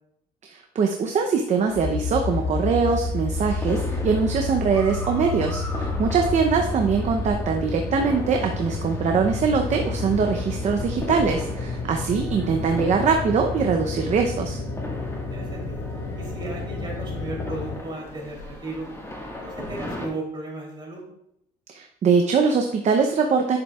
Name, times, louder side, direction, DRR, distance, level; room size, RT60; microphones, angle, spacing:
voice 1, 0.4-14.6 21.7-23.6, right 5 dB, 45° right, 3 dB, 0.7 m, -22 dB
sound 1, 1.6-20.1, left 1 dB, 15° left, 1.6 m, -37 dB
sound 2, 1.7-17.8, left 3 dB, 75° left, 1.9 m, -30 dB
voice 2, 15.3-15.8 16.1-18.9 19.4-21.0, right 2 dB, 25° right, -2 dB, 3.2 m, -35 dB
10.5 x 6.8 x 2.4 m, 0.78 s
cardioid pair, 110°, 17 cm